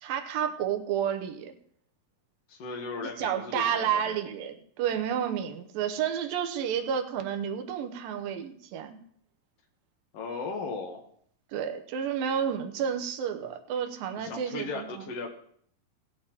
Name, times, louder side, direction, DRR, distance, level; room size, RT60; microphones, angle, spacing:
voice 1, 0.0-1.5 3.0-9.0 11.5-15.0, right 8 dB, 90° right, 6 dB, 2.6 m, -31 dB
voice 2, 2.5-4.2 10.1-11.0 14.2-15.3, left 4 dB, 60° left, 0 dB, 1.8 m, -37 dB
18.5 x 8.6 x 2.9 m, 0.63 s
omnidirectional pair, 4.0 m